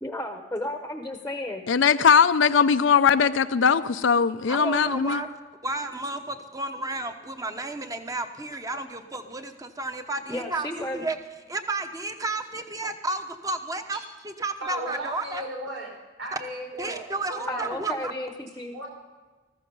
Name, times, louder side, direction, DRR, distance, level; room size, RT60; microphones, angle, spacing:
voice 1, 0.0-1.6 10.3-11.1 17.5-18.8, left 1 dB, 10° left, 5 dB, 0.8 m, -33 dB
voice 2, 1.7-5.2, left 6 dB, 80° left, 10 dB, 0.5 m, -20 dB
voice 3, 4.5-5.3 5.6-11.2 11.5-15.4 16.8-18.1, right 2 dB, 20° right, 7 dB, 0.9 m, -32 dB
voice 4, 14.6-15.9 16.2-17.0 17.3-17.7 18.7-18.9, right 1 dB, 85° right, -1 dB, 4.8 m, -35 dB
14.5 x 14.0 x 5.4 m, 1.3 s
head